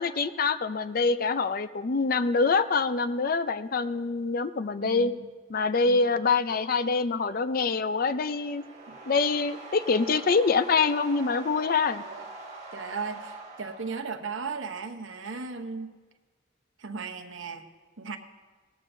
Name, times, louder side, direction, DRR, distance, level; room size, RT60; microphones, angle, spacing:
voice 1, 0.0-5.1 5.5-8.6 9.1-12.0, left 4 dB, 50° left, 13 dB, 0.5 m, -25 dB
voice 2, 4.8-5.2 5.9-6.0 8.9-9.0 12.0-12.2 12.7-15.9 16.8-17.7 18.0-18.2, right 5 dB, 80° right, 6 dB, 0.9 m, -36 dB
sound 1, 7.5-14.6, right 2 dB, 35° right, 1.7 m, -44 dB
18.5 x 13.5 x 2.7 m, 1.4 s
head